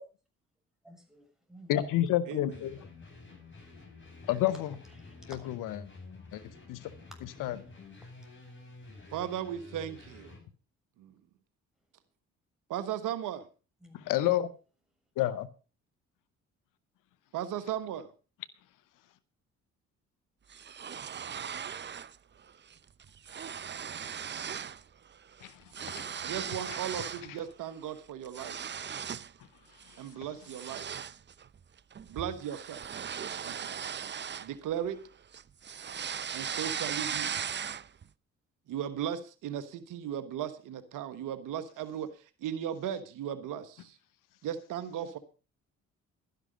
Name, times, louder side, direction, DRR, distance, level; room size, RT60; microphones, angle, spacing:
voice 1, 0.8-1.9 5.0-5.5 13.8-14.4, right 1 dB, ahead, 3 dB, 6.8 m, -53 dB
voice 2, 1.7-2.8 4.3-4.7 5.3-5.8 6.3-6.4 6.7-6.8 7.4-7.6 14.1-14.5 15.2-15.5 25.4-25.5 26.0-26.1, left 13 dB, 80° left, 16 dB, 1.0 m, -29 dB
sound 1, 2.5-10.4, left 3 dB, 35° left, 7.3 m, -50 dB
voice 3, 9.1-10.4 11.0-11.1 12.7-13.5 17.3-18.1 26.2-28.6 30.0-30.9 32.1-32.8 33.4-33.5 34.4-35.0 36.3-37.3 38.7-42.1 42.4-44.0 44.4-45.2, right 10 dB, 75° right, 12 dB, 1.3 m, -36 dB
sound 2, 20.5-22.2 22.5-22.7 23.0-24.8 25.1-27.3 27.7-29.4 29.8-30.0 30.4-35.0 35.3-38.0, right 7 dB, 35° right, 0.7 m, -38 dB
12.5 x 11.0 x 5.2 m, 0.34 s
supercardioid pair, 60°, 32 cm